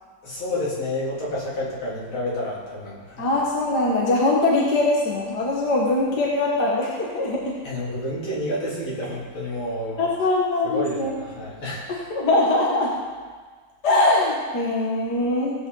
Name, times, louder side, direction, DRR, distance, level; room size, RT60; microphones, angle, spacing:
voice 1, 0.2-3.3 7.6-10.0 10.7-11.9, left 1 dB, 70° left, -7 dB, 3.9 m, -29 dB
voice 2, 3.2-7.5 10.0-11.1 11.9-12.9 13.8-15.5, left 2 dB, 50° left, -4 dB, 1.9 m, -22 dB
17.5 x 7.9 x 3.9 m, 1.5 s
omnidirectional pair, 2.4 m